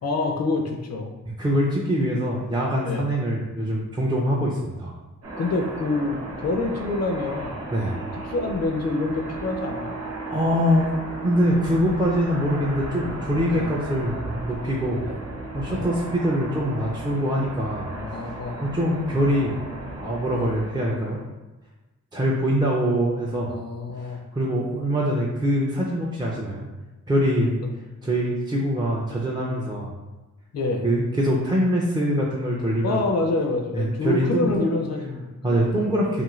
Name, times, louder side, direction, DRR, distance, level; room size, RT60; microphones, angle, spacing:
voice 1, 0.0-1.1 2.8-3.0 5.4-7.6 8.2-9.9 13.5-13.7 15.0-15.2 15.7-15.9 17.9-18.6 20.3-20.5 23.5-24.2 27.6-27.7 30.5-30.8 32.8-35.9, left 3 dB, 55° left, 3 dB, 0.4 m, -27 dB
voice 2, 1.4-4.9 7.7-8.0 10.3-15.0 15.5-17.9 18.2-18.3 18.6-19.6 20.0-21.2 22.1-23.5 24.0-26.7 27.1-27.5 28.0-29.9 30.8-33.0 33.7-34.7 35.4-36.2, equal, 15° right, -5 dB, 0.4 m, -24 dB
sound 1, 5.2-21.2, right 2 dB, 45° right, 0.9 m, -35 dB
2.6 x 2.5 x 3.0 m, 1.1 s
wide cardioid pair, 105°, 32 cm